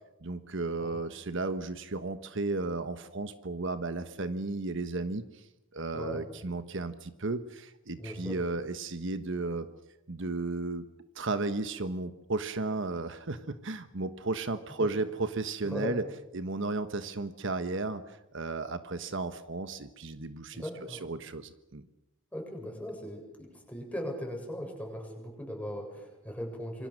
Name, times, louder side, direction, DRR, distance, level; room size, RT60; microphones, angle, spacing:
voice 1, 0.2-5.4 5.7-9.7 10.1-10.9 11.1-16.1 16.3-21.9, right 3 dB, 65° right, 11 dB, 1.3 m, -34 dB
voice 2, 8.0-8.4 14.8-14.9 15.7-15.9 20.5-21.0 22.3-26.9, equal, 5° left, 1 dB, 7.6 m, -39 dB
27.5 x 24.0 x 6.6 m, 0.90 s
head